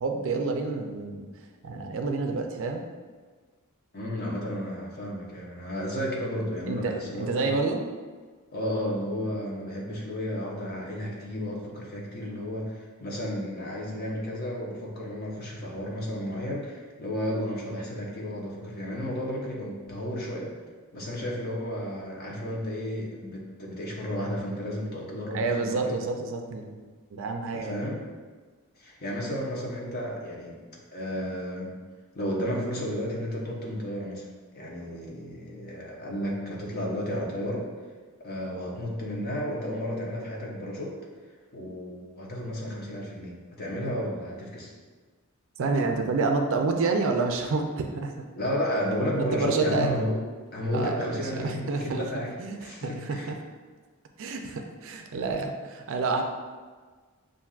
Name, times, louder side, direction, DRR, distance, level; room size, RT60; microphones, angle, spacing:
voice 1, 0.0-1.3 1.6-2.8 6.7-7.8 25.3-26.8 27.1-27.8 45.6-48.1 49.2-49.9 50.7-52.0 52.4-52.6 52.8-53.2 54.2-56.2, right 3 dB, 60° right, 4 dB, 0.4 m, -28 dB
voice 2, 3.9-7.5 8.5-20.5 20.9-26.0 27.6-28.0 28.8-30.6 30.9-31.7 32.1-34.3 34.5-37.6 38.2-40.9 41.5-44.7 48.4-50.2 50.5-52.3 52.6-53.3, equal, 45° left, -3 dB, 0.9 m, -32 dB
7.0 x 2.5 x 2.4 m, 1.4 s
head